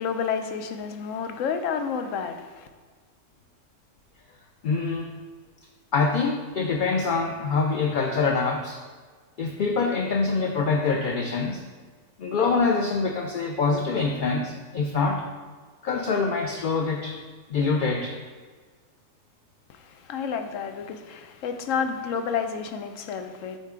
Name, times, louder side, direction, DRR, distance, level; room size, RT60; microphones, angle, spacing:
voice 1, 0.0-2.7 19.7-23.6, left 6 dB, 90° left, 7 dB, 1.0 m, -30 dB
voice 2, 4.6-5.2 5.9-8.8 9.4-11.6 12.2-15.2 15.8-17.2 17.5-18.2, left 4 dB, 55° left, 2 dB, 0.5 m, -25 dB
8.0 x 3.8 x 3.7 m, 1.5 s
omnidirectional pair, 1.3 m